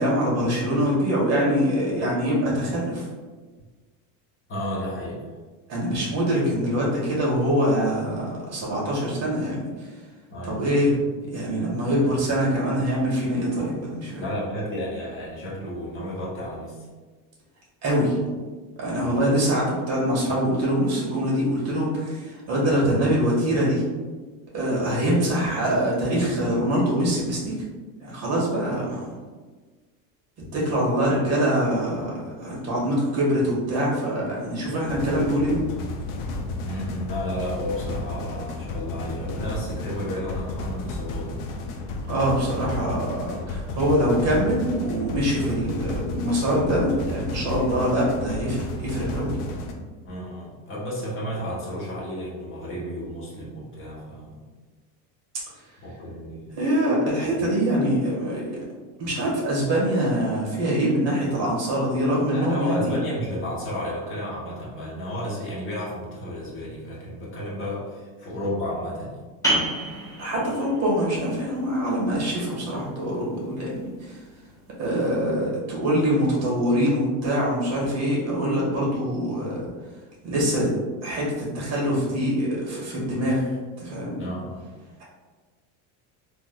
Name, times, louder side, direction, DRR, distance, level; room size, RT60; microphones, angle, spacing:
voice 1, 0.0-3.0 5.7-9.7 10.5-10.9 11.3-14.2 17.8-18.2 18.8-23.8 24.5-27.5 28.0-29.1 30.5-35.6 42.1-49.4 56.5-58.4 59.0-63.0 70.2-74.1 74.8-79.6 80.2-80.7 81.0-83.4 83.8-84.2, equal, 35° right, -5 dB, 1.4 m, -24 dB
voice 2, 4.5-5.2 10.3-10.6 14.2-16.9 19.0-19.3 36.6-41.3 50.0-54.4 55.8-56.6 62.3-69.2 84.2-84.7, equal, 30° left, -5 dB, 1.1 m, -32 dB
sound 1, 34.8-49.7, left 2 dB, 65° left, 0.6 m, -32 dB
sound 2, 69.4-74.8, right 1 dB, 10° left, 0.8 m, -32 dB
3.5 x 2.7 x 2.2 m, 1.4 s
cardioid pair, 140°, 44 cm